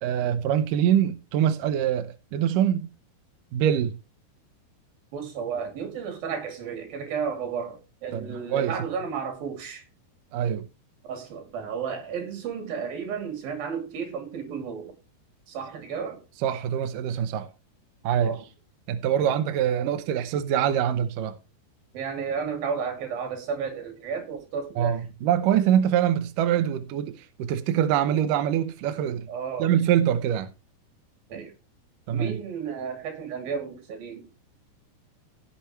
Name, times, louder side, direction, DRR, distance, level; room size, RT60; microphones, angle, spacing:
voice 1, 0.0-2.9 3.5-4.0 8.1-8.7 10.3-10.7 16.4-17.5 18.0-18.4 18.9-21.4 24.8-29.3 29.6-30.5 32.1-32.3, right 10 dB, 75° right, 2.0 m, -24 dB
voice 2, 5.1-9.8 11.1-15.0 15.5-16.2 18.2-18.4 19.2-19.4 21.9-25.0 29.3-29.7 31.3-31.5 32.1-34.3, right 6 dB, 60° right, 4.3 m, -33 dB
16.5 x 7.1 x 3.2 m
omnidirectional pair, 5.0 m